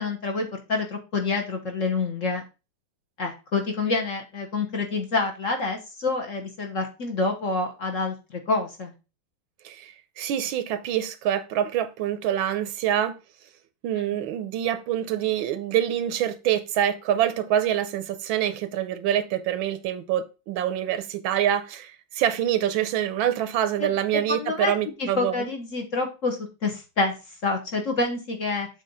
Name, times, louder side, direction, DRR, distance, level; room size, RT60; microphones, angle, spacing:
voice 1, 0.0-2.4 3.2-8.9 14.0-14.1 23.8-24.7 25.0-27.1 27.4-28.7, left 3 dB, 45° left, 1.2 m, -27 dB
voice 2, 9.6-13.2 13.8-25.4, right 10 dB, 80° right, 1.4 m, -26 dB
7.6 x 3.2 x 5.3 m
omnidirectional pair, 2.2 m